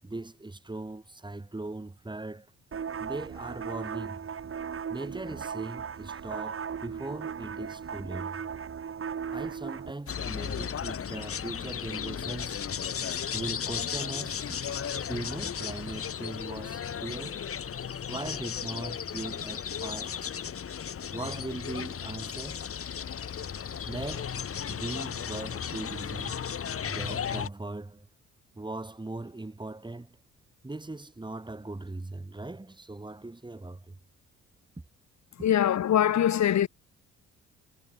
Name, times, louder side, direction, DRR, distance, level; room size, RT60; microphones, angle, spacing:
voice 1, 0.0-2.5 3.0-4.3 4.9-8.4 9.3-12.6 13.3-17.4 18.1-20.2 21.1-22.7 23.9-24.4 24.7-26.4 26.9-28.1 28.6-30.2 30.6-34.0, right 2 dB, 15° right, 5.6 m, -39 dB
sound 1, 2.7-9.9, right 7 dB, 45° right, 4.4 m, -37 dB
sound 2, 10.1-27.5, left 8 dB, 50° left, 2.3 m, -35 dB
voice 2, 35.4-36.7, left 10 dB, 65° left, 3.4 m, -23 dB
cardioid pair, 90°, 30 cm